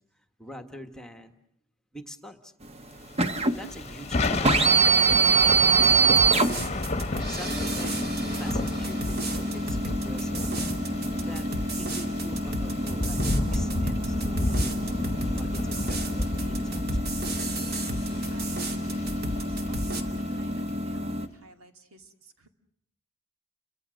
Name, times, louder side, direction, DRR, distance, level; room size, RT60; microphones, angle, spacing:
voice 1, 0.0-1.3 1.9-2.5 3.5-6.6 7.3-7.9 8.3-10.5 11.2-11.5 11.7-13.2 13.5-14.7 15.0-17.3, equal, 5° left, 7 dB, 1.4 m, -45 dB
sound 1, 2.6-21.3, right 4 dB, 30° right, 1.1 m, -26 dB
Thunder / Rain, 3.2-20.7, left 2 dB, 30° left, 1.2 m, -32 dB
sound 2, 6.2-20.0, right 2 dB, 45° right, 2.4 m, -34 dB
voice 2, 18.3-22.5, right 2 dB, 75° right, 6 dB, 2.5 m, -53 dB
30.0 x 24.5 x 6.4 m, 0.73 s
head